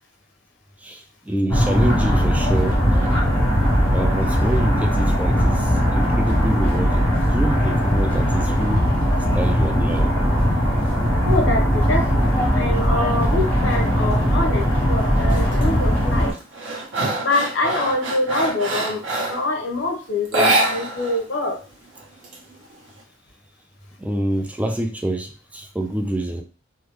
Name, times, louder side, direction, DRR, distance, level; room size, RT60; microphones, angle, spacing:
voice 1, 0.8-2.8 3.9-8.9 9.3-10.2 24.0-26.4, right 1 dB, 10° right, 4 dB, 0.3 m, -27 dB
sound 1, 1.5-16.3, equal, 10° left, 1.0 m, -19 dB
voice 2, 11.2-16.3 17.2-21.6, left 2 dB, 80° left, 1 dB, 1.0 m, -25 dB
sound 2, 15.3-15.7 16.1-19.5 20.2-21.2 21.5-21.6 22.0-22.9, right 2 dB, 70° right, 1.0 m, -24 dB
3.4 x 2.1 x 3.1 m, 0.35 s
head